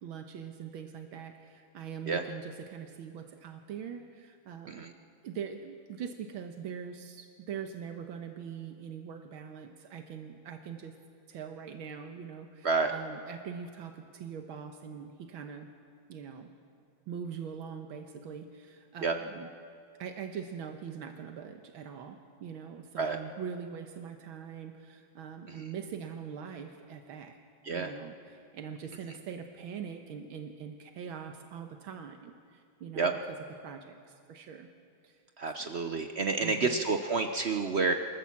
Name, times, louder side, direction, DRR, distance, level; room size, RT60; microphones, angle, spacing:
voice 1, 0.0-4.9 5.2-11.0 11.3-15.7 16.1-16.5 17.1-19.5 20.0-27.4 27.7-34.7 35.0-35.2 35.6-35.7 36.4-36.8, right 7 dB, 85° right, 5 dB, 1.9 m, -42 dB
voice 2, 35.4-37.9, right 4 dB, 60° right, 6 dB, 0.7 m, -29 dB
27.0 x 14.0 x 7.3 m, 2.3 s
omnidirectional pair, 2.2 m